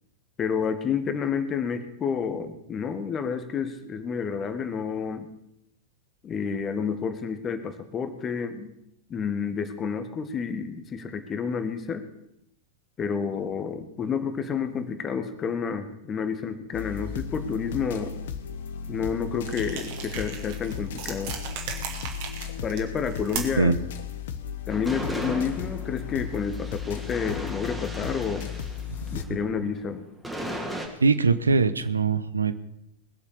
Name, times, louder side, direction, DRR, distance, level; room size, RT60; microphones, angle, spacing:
voice 1, 0.4-5.3 6.2-8.7 9.1-12.1 13.0-18.1 18.9-21.4 22.6-23.7 24.7-28.5 29.1-30.1, left 6 dB, 25° left, 9 dB, 1.7 m, -30 dB
sound 1, 16.7-29.2, left 8 dB, 55° left, 1.1 m, -35 dB
sound 2, 19.4-23.7, right 6 dB, 50° right, 2.7 m, -37 dB
sound 3, 24.7-29.5 30.2-30.9, equal, 5° right, 2.6 m, -37 dB
voice 2, 31.0-32.5, right 4 dB, 75° right, 13 dB, 0.7 m, -22 dB
21.0 x 7.4 x 6.9 m, 0.80 s
figure-of-eight pair, 90°, 0 cm